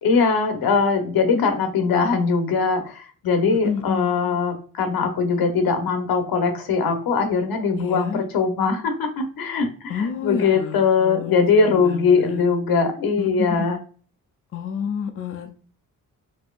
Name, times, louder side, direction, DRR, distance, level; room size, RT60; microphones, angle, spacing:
voice 1, 0.0-13.8, left 5 dB, 90° left, 6 dB, 0.9 m, -21 dB
voice 2, 3.5-4.1 7.8-8.2 9.9-12.5 13.2-13.7 14.5-15.5, left 6 dB, 40° left, 5 dB, 0.4 m, -29 dB
4.2 x 2.8 x 2.3 m, 0.41 s
wide cardioid pair, 175°, 35 cm